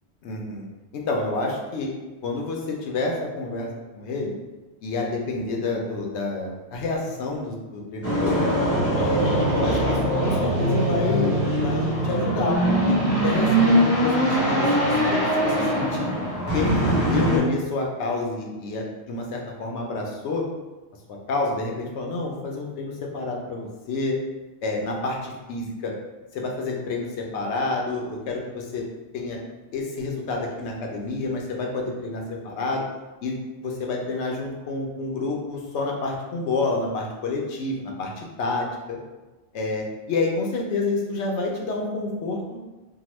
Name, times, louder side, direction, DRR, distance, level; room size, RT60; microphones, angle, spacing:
voice 1, 0.2-0.6 0.9-1.9 2.2-3.7 3.9-4.3 4.8-8.5 8.9-13.0 13.2-16.1 16.5-20.5 21.3-24.2 24.6-25.9 26.3-28.8 29.1-29.4 29.7-32.8 33.2-33.4 33.6-39.0 39.5-42.6, left 3 dB, 90° left, 0 dB, 0.9 m, -28 dB
sound 1, 8.0-17.4, right 1 dB, 15° left, 0.5 m, -22 dB
2.8 x 2.1 x 3.0 m, 1.1 s
omnidirectional pair, 1.1 m